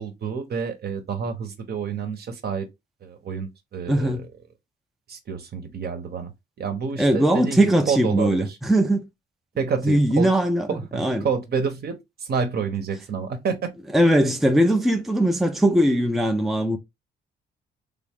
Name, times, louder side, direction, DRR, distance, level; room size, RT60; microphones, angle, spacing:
voice 1, 0.0-2.7 3.0-4.3 5.1-6.3 6.6-8.6 9.6-10.3 10.7-13.7, right 6 dB, 50° right, 1.0 m, -29 dB
voice 2, 3.9-4.2 7.0-9.1 9.8-10.7 10.9-11.3 13.9-16.8, right 1 dB, ahead, 0.6 m, -20 dB
3.6 x 2.4 x 3.5 m
cardioid pair, 90°, 20 cm